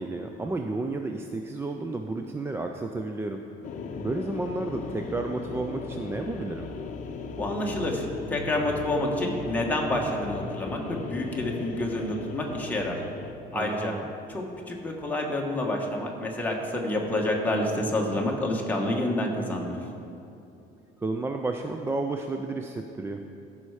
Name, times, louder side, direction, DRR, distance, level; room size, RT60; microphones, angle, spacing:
voice 1, 0.0-3.4 4.0-6.7 13.5-14.0 21.0-23.4, right 2 dB, 15° right, 4 dB, 0.3 m, -32 dB
sound 1, 3.6-13.3, left 4 dB, 45° left, 0.7 m, -37 dB
voice 2, 7.3-13.0 13.5-13.9 14.3-19.7, left 1 dB, 10° left, -1 dB, 1.2 m, -28 dB
14.0 x 5.6 x 4.7 m, 2.7 s
cardioid pair, 150°, 18 cm